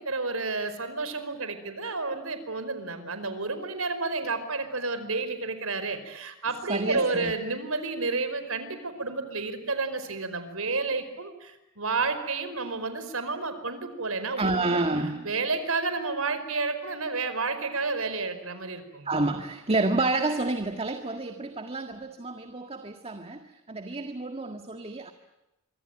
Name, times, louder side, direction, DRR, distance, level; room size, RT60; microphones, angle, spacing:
voice 1, 0.0-14.8 15.2-19.1, right 3 dB, 75° right, 10 dB, 4.8 m, -31 dB
voice 2, 6.7-7.3 14.4-15.3 19.1-25.1, right 2 dB, 30° right, 6 dB, 1.8 m, -29 dB
26.0 x 24.5 x 9.0 m, 0.95 s
head